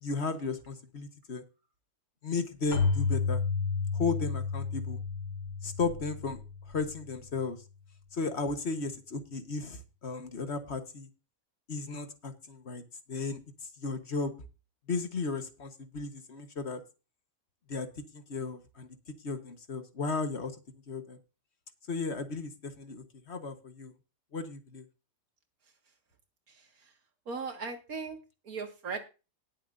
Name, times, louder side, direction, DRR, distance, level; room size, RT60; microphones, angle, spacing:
voice 1, 0.0-1.4 2.2-3.4 3.9-5.0 5.6-6.4 6.7-7.6 8.1-11.1 11.7-12.8 13.1-13.4 13.8-14.3 14.9-16.8 17.7-17.9 18.1-18.9 19.2-20.6 20.9-21.2 21.9-23.9 24.3-24.8, left 4 dB, 50° left, 8 dB, 1.5 m, -35 dB
Keyboard (musical), 2.7-7.2, left 5 dB, 90° left, 4.5 m, -32 dB
voice 2, 27.3-28.2 28.4-29.0, right 4 dB, 90° right, 5 dB, 2.3 m, -37 dB
19.5 x 7.4 x 2.6 m, 0.31 s
omnidirectional pair, 1.5 m